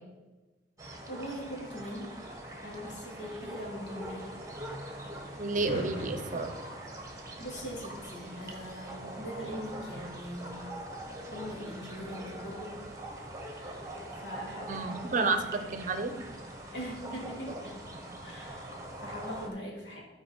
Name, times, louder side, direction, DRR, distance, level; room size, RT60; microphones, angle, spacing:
sound 1, 0.8-19.5, right 1 dB, 20° right, 1.2 m, -43 dB
voice 1, 1.1-2.2 2.6-4.3 7.4-10.7 11.3-12.8 13.5-15.3 15.6-15.8 16.7-17.7 18.2-20.0, equal, 85° left, -3 dB, 2.5 m, -41 dB
sound 2, 1.7-14.5, equal, 25° left, 2.4 m, -49 dB
voice 2, 5.4-6.5 14.7-15.4 15.7-16.1, right 3 dB, 45° right, 8 dB, 0.7 m, -30 dB
12.5 x 4.6 x 4.4 m, 1.2 s
head